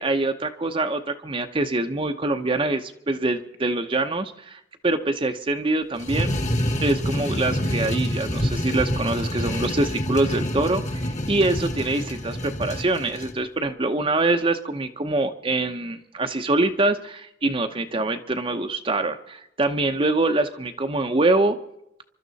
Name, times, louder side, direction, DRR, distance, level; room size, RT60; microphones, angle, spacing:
voice 1, 0.0-6.3 6.8-21.6, right 2 dB, 30° right, 5 dB, 0.9 m, -24 dB
sound 1, 6.0-13.4, equal, 40° left, 1.8 m, -27 dB
27.0 x 12.5 x 4.1 m, 0.79 s
head